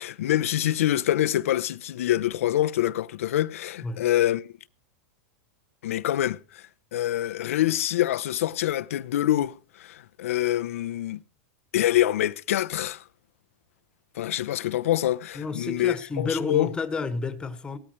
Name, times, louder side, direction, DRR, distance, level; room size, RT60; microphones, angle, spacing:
voice 1, 0.0-4.5 5.8-6.6 6.9-11.2 11.7-13.0 14.2-16.7, left 13 dB, 85° left, 0.8 m, -25 dB
voice 2, 15.3-17.8, left 4 dB, 10° left, 1.7 m, -30 dB
18.5 x 13.5 x 3.2 m
supercardioid pair, 145°, 7 cm